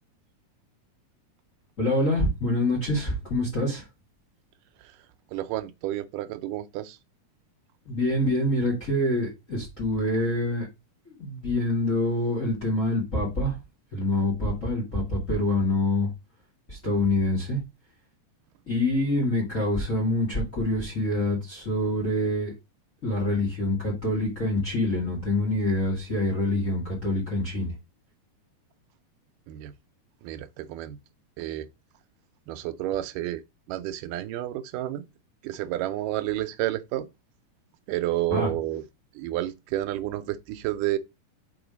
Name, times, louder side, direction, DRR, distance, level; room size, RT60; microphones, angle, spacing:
voice 1, 1.8-3.8 7.9-10.7 11.1-13.6 13.9-16.1 16.7-17.6 18.7-22.5 23.0-27.7 38.3-38.5, left 1 dB, 25° left, 2.1 m, -26 dB
voice 2, 5.3-7.0 29.5-29.7 30.2-31.0 31.4-31.7 32.5-33.4 33.7-35.0 35.4-37.1 37.9-38.8 39.2-41.0, right 14 dB, 80° right, 2.2 m, -30 dB
5.6 x 3.9 x 5.1 m
omnidirectional pair, 3.9 m